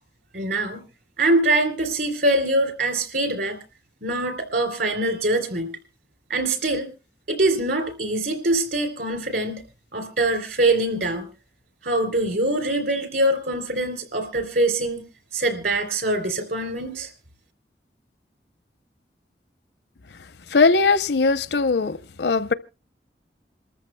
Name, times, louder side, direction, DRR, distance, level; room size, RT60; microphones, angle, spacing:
voice 1, 0.3-0.8 1.2-3.6 4.0-5.8 6.3-6.9 7.3-9.6 9.9-11.3 11.8-15.0 15.3-17.1, right 2 dB, 65° right, 3.4 m, -23 dB
voice 2, 20.5-22.5, left 4 dB, 75° left, 0.7 m, -20 dB
27.5 x 14.0 x 2.2 m
head